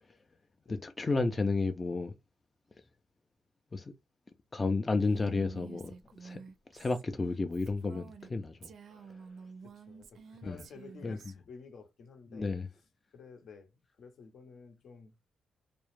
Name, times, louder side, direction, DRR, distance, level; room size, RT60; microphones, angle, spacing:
voice 1, 0.7-2.1 3.7-3.9 4.5-5.9 6.2-6.4 6.7-8.7 10.5-10.6 11.0-11.2 12.3-12.7, left 3 dB, 30° left, 0.4 m, -31 dB
Female speech woman speaking, 4.8-8.3 8.6-11.3, right 5 dB, 70° right, 0.4 m, -50 dB
voice 2, 9.6-12.5 13.1-15.1, left 5 dB, 65° left, 0.8 m, -52 dB
2.3 x 2.1 x 3.1 m
cardioid pair, 80°, 0 cm